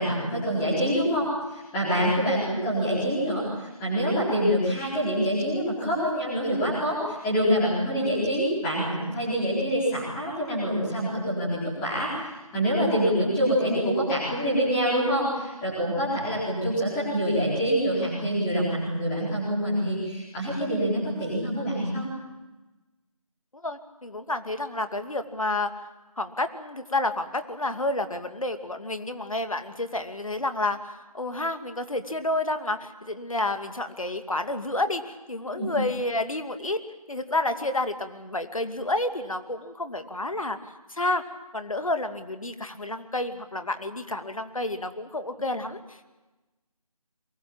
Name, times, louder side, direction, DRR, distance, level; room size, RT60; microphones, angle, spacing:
voice 1, 0.0-22.1 35.6-35.7, equal, 5° left, -8 dB, 4.3 m, -26 dB
voice 2, 23.5-25.7 26.2-36.8 37.1-40.6 40.9-41.2 41.5-46.1, left 2 dB, 65° left, 8 dB, 2.6 m, -30 dB
23.5 x 21.5 x 8.8 m, 1.1 s
figure-of-eight pair, 175°, 19 cm